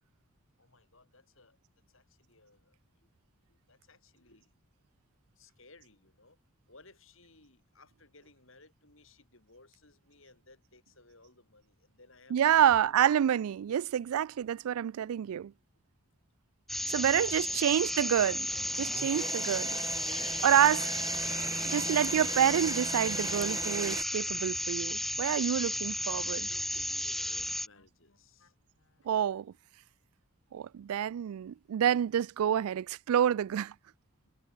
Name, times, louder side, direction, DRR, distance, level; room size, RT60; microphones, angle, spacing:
voice 1, 0.6-1.6 1.9-3.1 3.5-4.5 5.4-6.4 6.7-12.9 16.7-17.7 20.4-21.0 25.5-25.9 26.3-28.5 29.0-29.1, left 3 dB, 65° left, 7.0 m, -59 dB
voice 2, 12.3-15.5 16.9-18.5 18.8-19.8 20.4-20.8 21.7-26.4 29.1-29.5 30.5-33.7, right 9 dB, 85° right, 0.3 m, -28 dB
sound 1, 16.7-27.7, equal, ahead, 0.8 m, -33 dB
sound 2, 16.9-24.0, right 3 dB, 15° right, 2.4 m, -40 dB
Wind instrument woodwind instrument, 24.2-29.1, left 3 dB, 80° left, 7.3 m, -67 dB
head